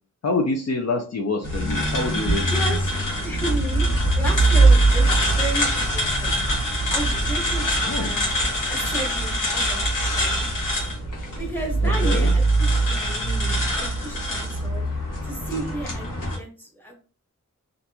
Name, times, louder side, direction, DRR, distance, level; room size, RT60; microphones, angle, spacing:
voice 1, 0.2-2.5 7.9-8.1 11.8-12.3, left 3 dB, 55° left, 2 dB, 0.5 m, -26 dB
sound 1, 1.4-16.4, right 1 dB, 80° left, 1.0 m, -22 dB
voice 2, 2.5-2.9 3.2-3.9 4.1-5.1 5.4-6.5 6.9-8.4 8.7-9.8 10.1-10.5 11.4-14.8 15.2-16.1 16.3-17.0, right 1 dB, 5° left, 0 dB, 1.2 m, -33 dB
2.9 x 2.5 x 2.2 m, 0.36 s
wide cardioid pair, 55°, 31 cm